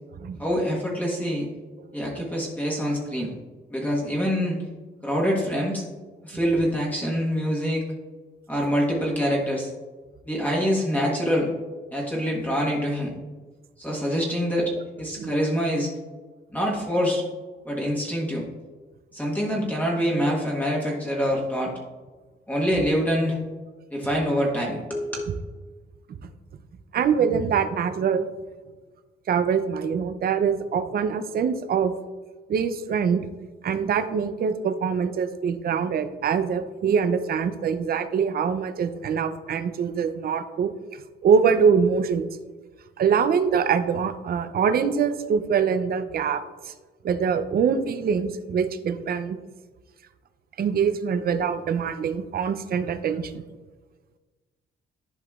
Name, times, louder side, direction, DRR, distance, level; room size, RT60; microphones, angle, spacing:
voice 1, 0.4-1.5 1.9-3.3 3.7-4.6 5.0-5.8 6.2-7.8 8.5-9.7 10.2-11.5 11.9-13.1 13.8-15.9 16.5-17.2 17.6-18.4 19.1-21.7 22.5-23.4 23.9-25.3, equal, 10° left, -4 dB, 1.3 m, -25 dB
voice 2, 26.9-28.3 29.3-31.9 32.5-33.3 33.6-40.7 41.2-42.3 43.0-46.7 47.0-49.4 50.6-53.4, right 6 dB, 50° right, 10 dB, 0.5 m, -24 dB
11.0 x 4.8 x 2.4 m, 1.3 s
cardioid pair, 90°, 20 cm